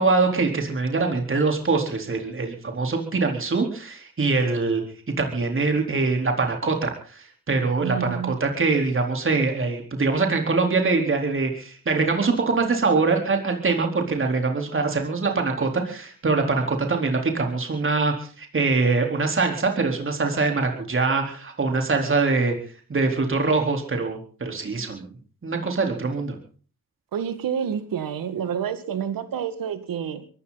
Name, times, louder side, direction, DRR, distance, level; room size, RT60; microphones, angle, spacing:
voice 1, 0.0-22.5 22.9-25.1 25.4-26.4, right 3 dB, 40° right, 3 dB, 4.1 m, -23 dB
voice 2, 7.8-8.4 27.1-30.3, right 8 dB, 85° right, 11 dB, 2.0 m, -29 dB
23.0 x 15.0 x 4.2 m, 0.42 s
cardioid pair, 80°, 33 cm